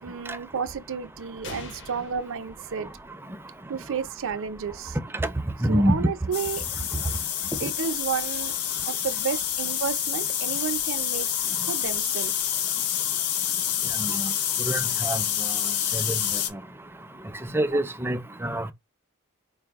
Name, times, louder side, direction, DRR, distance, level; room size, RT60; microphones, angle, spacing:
voice 1, 0.0-2.9 3.7-5.0 5.7-6.6 7.6-8.5 8.9-11.3 11.7-12.4, right 6 dB, 60° right, 0.5 m, -31 dB
sound 1, 1.4-3.4, left 3 dB, 55° left, 0.8 m, -44 dB
voice 2, 5.6-6.1 14.0-14.3 14.6-15.2 15.9-16.1 17.5-18.7, equal, 10° right, 0.4 m, -25 dB
sound 2, 6.3-16.5, left 10 dB, 85° left, 0.6 m, -28 dB
4.6 x 2.0 x 3.4 m
head